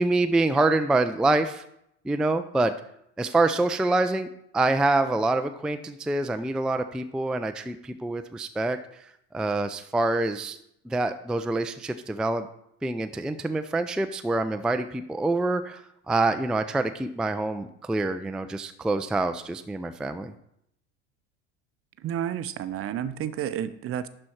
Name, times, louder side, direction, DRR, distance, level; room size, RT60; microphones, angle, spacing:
voice 1, 0.0-1.6 2.0-2.8 3.2-4.3 4.5-8.8 9.3-10.6 10.9-12.5 12.8-20.3, right 2 dB, ahead, 8 dB, 0.4 m, -26 dB
voice 2, 22.0-24.1, right 10 dB, 40° right, 13 dB, 0.7 m, -31 dB
11.5 x 4.3 x 4.5 m, 0.75 s
hypercardioid pair, 80°, 36 cm